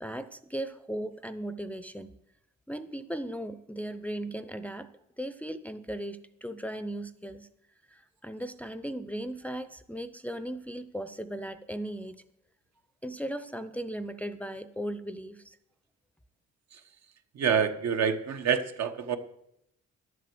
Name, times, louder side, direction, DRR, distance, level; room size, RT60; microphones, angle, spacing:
voice 1, 0.0-2.2 2.7-4.9 5.2-7.5 7.9-12.2 13.0-15.6, right 1 dB, 5° left, 11 dB, 0.6 m, -37 dB
voice 2, 17.3-19.2, right 7 dB, 60° right, 7 dB, 1.2 m, -27 dB
11.0 x 7.6 x 7.8 m, 0.79 s
cardioid pair, 90°, 30 cm